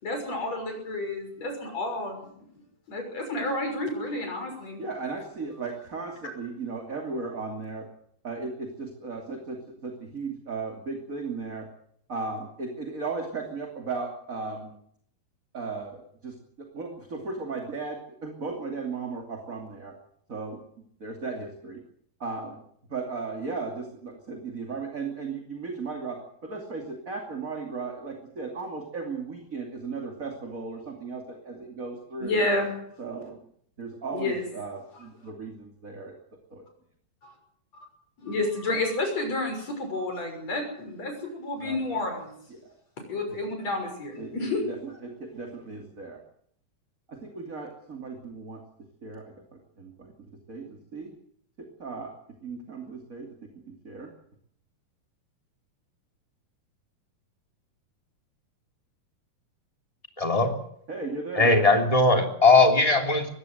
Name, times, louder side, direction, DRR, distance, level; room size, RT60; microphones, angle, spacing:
voice 1, 0.0-2.3 2.9-4.8 32.2-32.7 34.1-34.4 37.2-37.3 38.2-42.3 43.1-44.6, left 2 dB, 45° left, 4 dB, 7.2 m, -30 dB
voice 2, 4.8-7.9 8.2-11.7 12.1-14.7 15.5-19.9 20.3-21.8 22.2-22.6 22.9-32.5 33.0-33.4 33.8-36.1 36.5-36.6 41.6-42.2 42.5-42.7 44.2-46.2 47.1-48.6 49.0-49.2 49.5-50.1 50.5-51.2 51.6-52.1 52.4-54.1 60.9-61.5, right 4 dB, 25° right, 2 dB, 2.7 m, -36 dB
voice 3, 60.2-60.6 61.3-63.3, left 3 dB, 10° left, 3 dB, 2.8 m, -19 dB
21.5 x 16.5 x 8.0 m, 0.67 s
omnidirectional pair, 4.0 m